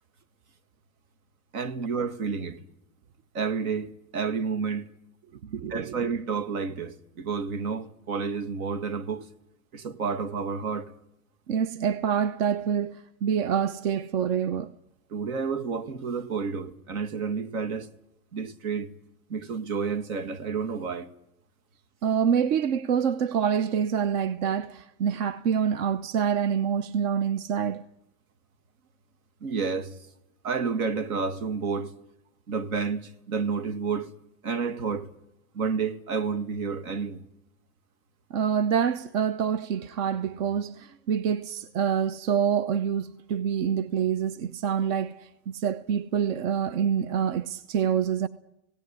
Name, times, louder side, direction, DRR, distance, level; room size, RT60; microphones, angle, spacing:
voice 1, 1.5-2.6 3.3-4.9 5.7-9.3 9.7-10.9 15.1-17.9 18.3-18.9 19.3-21.1 29.4-30.0 30.4-31.9 32.5-34.1 34.4-35.1 35.5-37.2, right 5 dB, 90° right, 1.9 m, -30 dB
voice 2, 5.4-6.1 11.5-14.7 22.0-27.9 38.3-48.3, right 8 dB, 70° right, 1.0 m, -26 dB
17.5 x 17.5 x 9.7 m
supercardioid pair, 135°, 41 cm